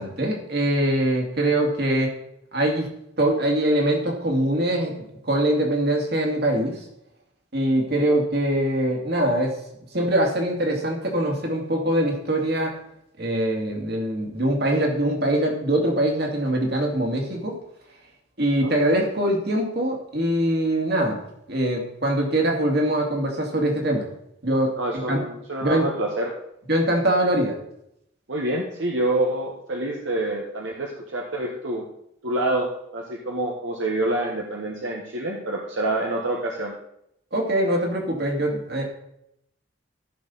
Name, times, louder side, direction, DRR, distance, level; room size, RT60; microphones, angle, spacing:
voice 1, 0.0-2.1 2.5-2.9 3.2-6.8 7.5-9.6 9.9-12.7 13.2-17.5 18.4-21.2 21.5-24.1 24.4-25.2 25.6-25.9 26.7-27.6 37.3-38.9, right 1 dB, 55° right, 1 dB, 2.4 m, -23 dB
voice 2, 24.8-26.3 28.3-31.8 32.2-36.7, right 1 dB, 70° right, -1 dB, 1.3 m, -27 dB
14.5 x 6.6 x 4.1 m, 0.77 s
head